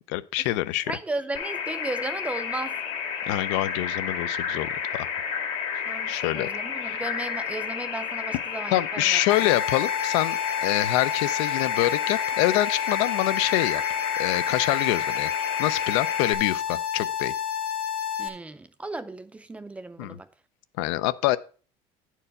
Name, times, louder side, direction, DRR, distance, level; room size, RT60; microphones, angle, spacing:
voice 1, 0.1-0.9 3.3-5.1 6.1-6.5 6.8-7.0 8.7-13.8 14.2-15.3 15.6-17.3 20.0-20.2 20.8-21.4, left 16 dB, 90° left, 0.5 m, -26 dB
voice 2, 0.9-2.7 5.9-9.2 18.2-20.3, right 2 dB, 10° right, 0.5 m, -35 dB
sound 1, 1.3-16.3, left 7 dB, 70° left, 1.8 m, -31 dB
sound 2, 9.3-18.3, left 9 dB, 40° left, 0.9 m, -30 dB
9.9 x 4.6 x 5.2 m
cardioid pair, 165°, 14 cm